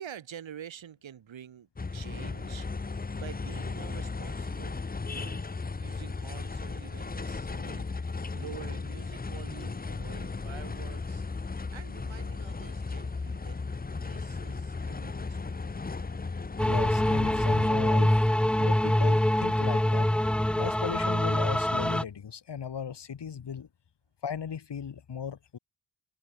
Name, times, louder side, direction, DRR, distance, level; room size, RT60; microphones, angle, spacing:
voice 1, 0.0-2.7 3.1-5.4 5.8-7.9 8.3-11.3 11.7-13.6 14.0-15.6, right 9 dB, 80° right, 7.1 m, -47 dB
sound 1, 1.8-17.7, left 4 dB, 20° left, 0.9 m, -36 dB
sound 2, 16.6-22.0, left 1 dB, 5° left, 0.4 m, -24 dB
voice 2, 16.7-20.1 20.6-23.7 24.2-25.6, left 7 dB, 65° left, 5.1 m, -37 dB
cardioid pair, 80°, 45 cm